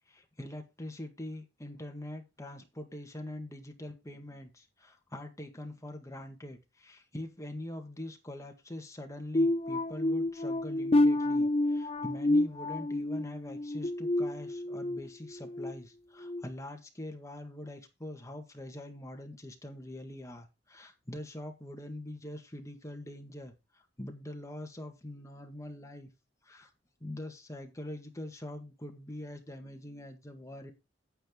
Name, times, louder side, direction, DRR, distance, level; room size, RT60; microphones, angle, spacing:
voice 1, 0.1-26.1 26.4-26.7 27.0-30.7, left 1 dB, 15° left, 4 dB, 1.7 m, -44 dB
sound 1, 9.4-15.0 15.4-15.7 16.2-16.4, left 1 dB, 35° left, 0.7 m, -29 dB
9.0 x 8.9 x 3.8 m, 0.25 s
head